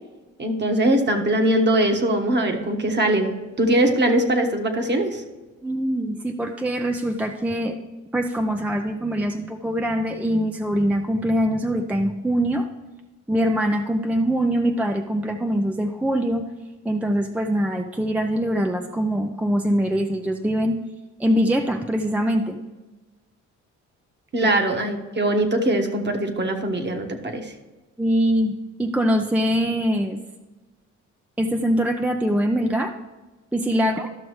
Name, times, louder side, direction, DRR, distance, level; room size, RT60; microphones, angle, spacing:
voice 1, 0.4-3.3 3.6-5.2 24.3-27.5, right 1 dB, 35° right, 4 dB, 1.4 m, -21 dB
voice 2, 5.6-7.8 8.1-12.7 13.3-16.4 16.8-20.8 21.2-22.6 28.0-30.2 31.4-32.9 33.5-34.1, equal, 5° right, 5 dB, 0.5 m, -23 dB
13.0 x 6.1 x 3.1 m, 1.2 s
cardioid pair, 90°, 30 cm